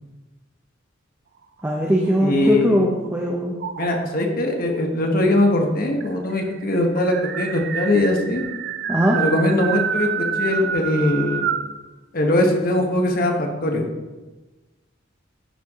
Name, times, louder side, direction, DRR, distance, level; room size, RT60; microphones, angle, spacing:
voice 1, 1.6-3.6 8.9-9.2, equal, 10° right, -1 dB, 0.6 m, -20 dB
sound 1, 1.6-3.1 3.6-4.2 5.2-5.3 5.6-5.7 6.0-11.8, right 7 dB, 55° right, 0.4 m, -28 dB
voice 2, 2.2-2.9 3.8-8.4 9.2-11.5 12.1-13.9, left 1 dB, 50° left, 2 dB, 1.1 m, -21 dB
11.5 x 4.6 x 3.6 m, 1.2 s
head